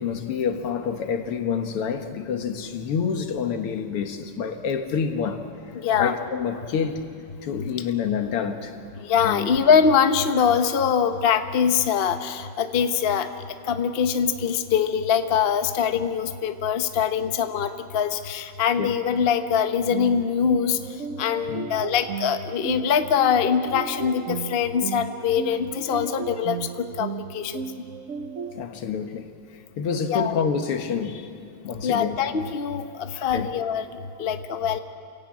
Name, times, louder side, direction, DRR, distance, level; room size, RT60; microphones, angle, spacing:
voice 1, 0.0-5.4 6.0-7.1 7.4-8.7 9.2-9.5 18.8-18.9 21.5-21.7 28.5-29.3 29.8-31.3 31.6-32.2 33.3-33.5, left 6 dB, 85° left, 6 dB, 2.3 m, -27 dB
voice 2, 5.8-6.2 9.1-13.3 13.7-20.8 21.2-27.6 30.1-30.3 31.8-33.9 34.2-34.8, left 7 dB, 50° left, 8 dB, 0.7 m, -23 dB
sound 1, 19.9-28.6, right 7 dB, 90° right, 0.6 m, -35 dB
28.0 x 17.0 x 8.7 m, 2.5 s
omnidirectional pair, 2.4 m